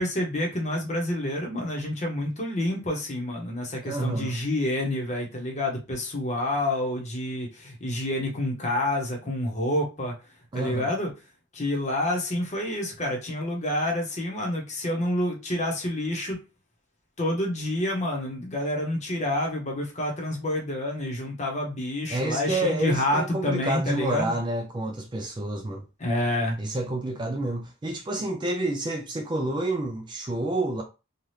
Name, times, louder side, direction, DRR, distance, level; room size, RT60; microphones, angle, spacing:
voice 1, 0.0-10.1 10.5-11.1 11.5-16.4 17.2-24.4 26.0-26.6, left 1 dB, 35° left, 0.8 m, -28 dB
voice 2, 3.8-4.4 10.5-10.9 22.1-25.8 26.6-30.8, right 2 dB, 20° right, 0.3 m, -29 dB
2.7 x 2.3 x 3.2 m
head